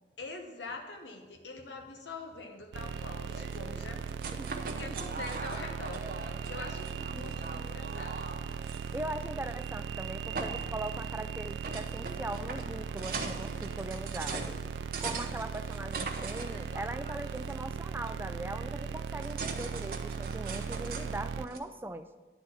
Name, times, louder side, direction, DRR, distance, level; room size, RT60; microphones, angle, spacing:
voice 1, 0.2-4.2 4.7-6.2 6.4-8.5, left 3 dB, 85° left, 4 dB, 1.0 m, -44 dB
sound 1, 2.7-21.5, right 7 dB, 85° right, 0.3 m, -38 dB
sound 2, 2.8-21.6, right 3 dB, 55° right, 0.9 m, -42 dB
voice 2, 4.4-5.2 8.9-14.5 15.0-22.1, right 1 dB, 10° right, 9 dB, 0.4 m, -40 dB
10.5 x 4.1 x 7.1 m, 1.2 s
head